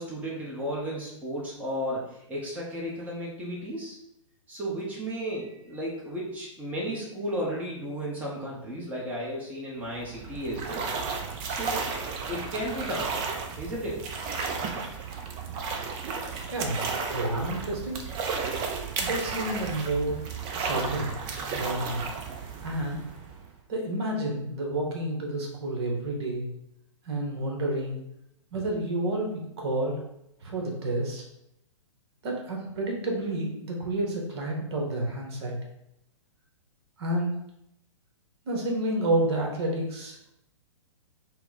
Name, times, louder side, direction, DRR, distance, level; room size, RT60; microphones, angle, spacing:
voice 1, 0.0-4.0 4.5-10.8 11.4-11.8 12.3-13.1 13.6-14.1, equal, 10° right, -5 dB, 0.8 m, -34 dB
sound 1, 9.8-23.6, right 5 dB, 25° right, 0.5 m, -33 dB
voice 2, 16.5-18.0 19.0-20.2 20.5-21.2 21.6-22.1 22.6-23.0 23.7-26.4 27.0-28.0 28.5-30.0 30.4-31.2 32.2-35.6 37.0-37.3 38.4-40.1, right 1 dB, 50° right, 0 dB, 1.1 m, -30 dB
4.4 x 2.1 x 4.0 m, 0.81 s
figure-of-eight pair, 115°, 17 cm